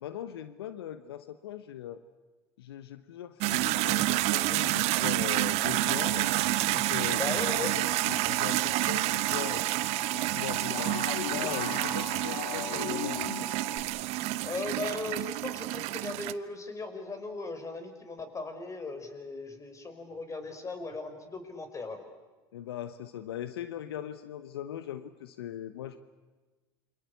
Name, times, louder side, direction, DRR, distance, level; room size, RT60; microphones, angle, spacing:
voice 1, 0.0-2.0 2.6-6.3 6.7-9.7 10.1-13.5 22.5-26.0, left 11 dB, 80° left, 12 dB, 1.1 m, -40 dB
sound 1, 3.4-16.3, right 18 dB, 60° right, 1.0 m, -29 dB
Alarm, 5.6-13.8, right 2 dB, 10° right, 6.7 m, -42 dB
voice 2, 7.1-7.8 14.4-22.0, left 3 dB, 25° left, 8 dB, 5.2 m, -37 dB
sound 2, 10.7-13.6, left 12 dB, 50° left, 2.0 m, -38 dB
28.0 x 24.5 x 8.4 m, 1.3 s
hypercardioid pair, 80°, 13 cm